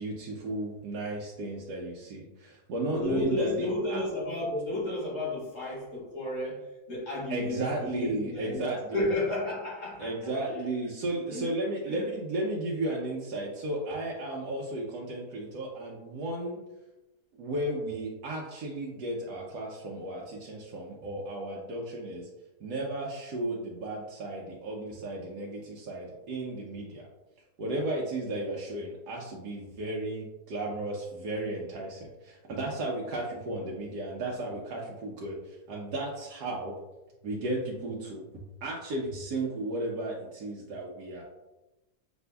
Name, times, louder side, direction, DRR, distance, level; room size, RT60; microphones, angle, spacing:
voice 1, 0.0-4.0 7.3-9.2 10.0-16.6 17.3-22.3 22.6-27.1 27.6-36.7 37.2-38.2 38.6-41.2, right 1 dB, 85° right, -3 dB, 1.2 m, -34 dB
voice 2, 2.9-10.1 10.5-10.6 11.3-11.5 11.9-12.0, left 2 dB, 70° left, -7 dB, 2.2 m, -32 dB
6.7 x 2.6 x 2.2 m, 1.0 s
omnidirectional pair, 1.7 m